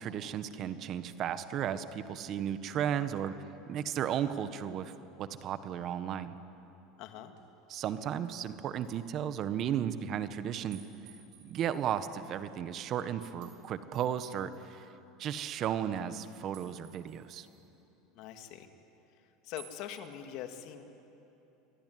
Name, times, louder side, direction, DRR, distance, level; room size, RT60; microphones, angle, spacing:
voice 1, 0.0-3.3 3.7-4.9 5.2-6.4 7.7-11.1 11.4-14.9 15.2-17.5, right 9 dB, 45° right, 11 dB, 1.5 m, -34 dB
voice 2, 7.0-7.3 18.1-18.7 19.4-20.8, left 10 dB, 60° left, 6 dB, 2.3 m, -43 dB
sound 1, 7.4-7.5 8.0-8.5 8.8-9.0 9.3-9.4 10.7-12.2 13.4-13.6 13.9-14.8 16.5-17.7 19.6-20.2, right 11 dB, 65° right, 5.7 m, -58 dB
27.0 x 22.5 x 9.6 m, 3.0 s
supercardioid pair, 100°, 0 cm